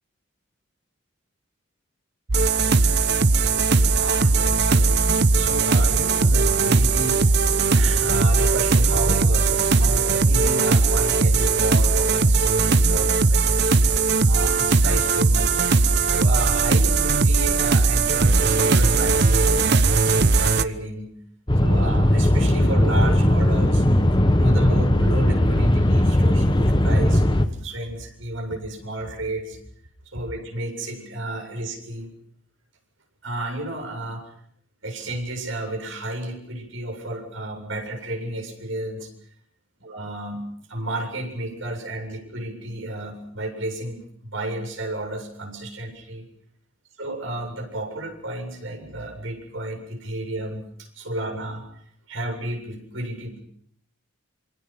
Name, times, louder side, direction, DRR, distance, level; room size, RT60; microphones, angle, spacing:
sound 1, 2.3-20.6, right 3 dB, 55° right, 1.0 m, -19 dB
voice 1, 3.7-7.4 7.7-15.6 16.1-21.1 21.6-23.9 24.4-29.6 30.0-32.1 33.2-34.3 34.8-39.1 39.8-46.3 47.0-51.6 52.1-53.4, right 1 dB, 70° right, 3 dB, 7.8 m, -32 dB
sound 2, 21.5-27.4, left 1 dB, 25° left, 1.6 m, -18 dB
27.0 x 24.0 x 6.1 m, 0.65 s
head